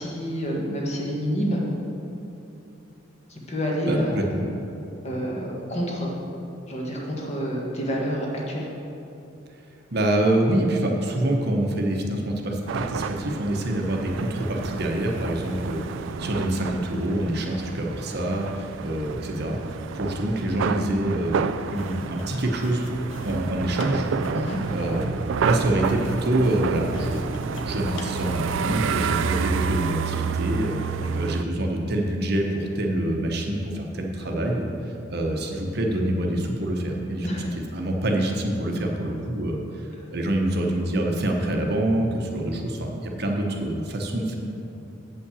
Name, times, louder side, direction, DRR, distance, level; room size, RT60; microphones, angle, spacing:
voice 1, 0.0-1.6 3.3-4.1 5.0-6.1 6.7-8.7 24.3-24.6 31.0-31.1 37.2-37.5, equal, 35° left, -3 dB, 1.5 m, -28 dB
voice 2, 3.9-4.4 9.9-19.6 19.9-21.5 21.7-24.1 24.7-25.1 25.4-30.8 31.1-37.4 37.7-44.4, right 1 dB, 55° right, 1 dB, 1.0 m, -26 dB
sound 1, 12.7-31.4, right 6 dB, 75° right, 0.3 m, -29 dB
sound 2, 21.7-28.7, left 3 dB, 75° left, 0.9 m, -44 dB
7.9 x 5.6 x 7.0 m, 2.8 s
head